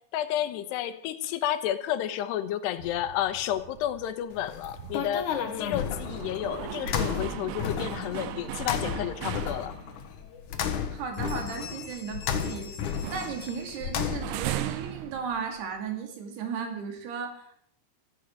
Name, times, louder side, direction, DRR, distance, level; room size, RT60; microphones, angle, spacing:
voice 1, 0.1-9.7, left 11 dB, 80° left, 11 dB, 3.0 m, -31 dB
sound 1, 2.8-10.1 10.5-10.6 11.0-12.6 12.9-15.9, right 14 dB, 85° right, 3.1 m, -39 dB
sound 2, 4.3-14.5, left 7 dB, 60° left, 2.1 m, -33 dB
sound 3, 10.1-10.2 10.6-10.9 11.1-14.3, left 6 dB, 35° left, 2.0 m, -47 dB
voice 2, 10.9-17.6, right 6 dB, 65° right, 4 dB, 4.6 m, -35 dB
15.0 x 14.0 x 6.6 m, 0.66 s
omnidirectional pair, 5.1 m